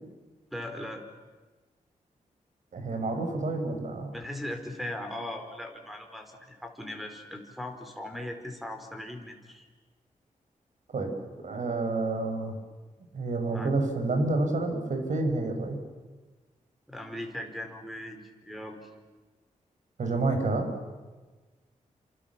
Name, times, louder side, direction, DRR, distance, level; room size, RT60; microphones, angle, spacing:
voice 1, 0.5-1.0 4.1-9.7 13.5-13.7 16.9-18.9, left 1 dB, ahead, 5 dB, 4.6 m, -39 dB
voice 2, 2.7-4.1 10.9-11.1 11.4-12.6 13.1-15.8 20.0-20.7, right 2 dB, 65° right, 5 dB, 5.9 m, -29 dB
29.5 x 27.5 x 7.4 m, 1.3 s
wide cardioid pair, 115°, 14 cm